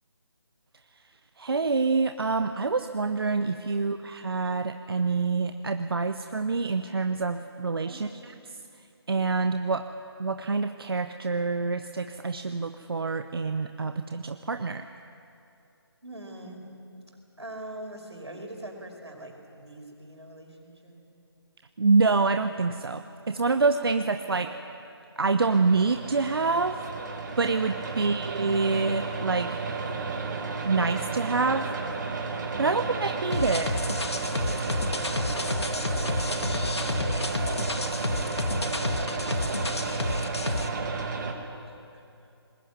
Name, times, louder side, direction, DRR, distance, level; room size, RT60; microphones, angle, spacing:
voice 1, 1.4-8.1 9.1-9.8 10.2-14.9 21.8-24.5 25.2-26.8 27.4-29.6 30.6-31.7 32.6-33.7, right 4 dB, 60° right, 8 dB, 0.9 m, -26 dB
voice 2, 7.8-8.2 16.0-16.7 17.4-21.0 24.2-24.5 35.1-38.2 38.5-39.7 41.7-42.1, right 1 dB, 85° right, 2 dB, 5.3 m, -44 dB
sound 1, 25.4-41.3, right 4 dB, 45° right, 2.3 m, -33 dB
sound 2, 33.3-40.7, left 2 dB, 75° left, 2.0 m, -30 dB
20.5 x 19.5 x 9.5 m, 2.7 s
figure-of-eight pair, 155°, 14 cm